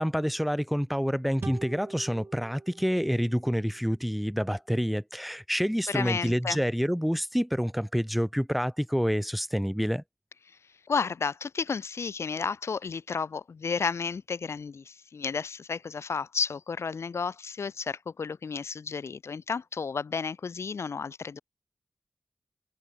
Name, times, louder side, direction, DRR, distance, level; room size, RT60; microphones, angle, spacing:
voice 1, 0.0-10.0, equal, ahead, 0.4 m, -28 dB
sound 1, 1.4-4.8, right 3 dB, 55° right, 1.0 m, -45 dB
voice 2, 5.9-6.6 10.9-21.4, left 5 dB, 75° left, 0.5 m, -32 dB
cardioid pair, 45°, 5 cm